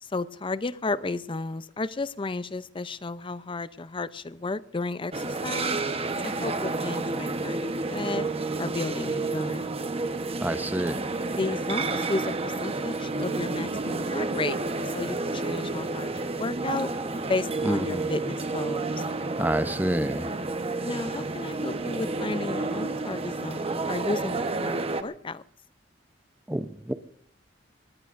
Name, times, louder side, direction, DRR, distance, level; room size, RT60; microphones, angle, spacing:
voice 1, 0.0-5.8 6.2-8.3 8.6-9.7 11.3-14.6 14.9-16.9 17.3-19.0 20.8-25.4, left 3 dB, 30° left, 16 dB, 0.6 m, -33 dB
sound 1, 5.1-25.0, right 3 dB, 30° right, 1.0 m, -30 dB
voice 2, 10.4-11.0 17.6-18.1 19.4-20.3 26.5-26.9, right 1 dB, 10° right, 11 dB, 0.7 m, -28 dB
24.0 x 19.5 x 2.6 m, 0.65 s
head